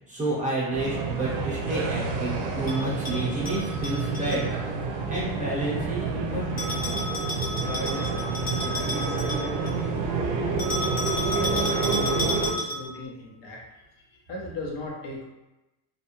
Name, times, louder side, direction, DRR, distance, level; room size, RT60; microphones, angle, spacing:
voice 1, 0.1-4.5 5.1-6.7, right 1 dB, 15° right, -6 dB, 0.7 m, -30 dB
sound 1, 0.7-12.5, right 4 dB, 85° right, 0.6 m, -29 dB
Bell, 2.7-4.4 6.6-9.8 10.6-13.0, left 1 dB, 35° left, 0.9 m, -32 dB
voice 2, 7.6-9.9 10.4-15.2, left 1 dB, 60° left, -2 dB, 0.9 m, -39 dB
2.4 x 2.2 x 2.9 m, 0.99 s
cardioid pair, 115°, 49 cm